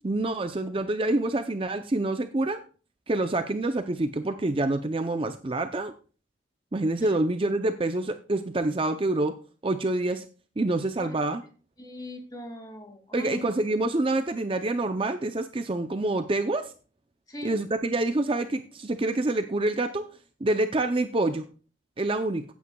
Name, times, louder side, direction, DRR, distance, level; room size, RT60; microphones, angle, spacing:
voice 1, 0.0-2.6 3.1-5.9 6.7-9.3 9.6-10.3 10.6-11.4 13.1-16.7 17.4-20.1 20.4-21.4 22.0-22.4, right 2 dB, 25° right, 8 dB, 0.5 m, -27 dB
voice 2, 11.8-13.5 17.3-17.6, left 1 dB, 20° left, 3 dB, 2.1 m, -40 dB
16.5 x 8.5 x 2.3 m, 0.37 s
head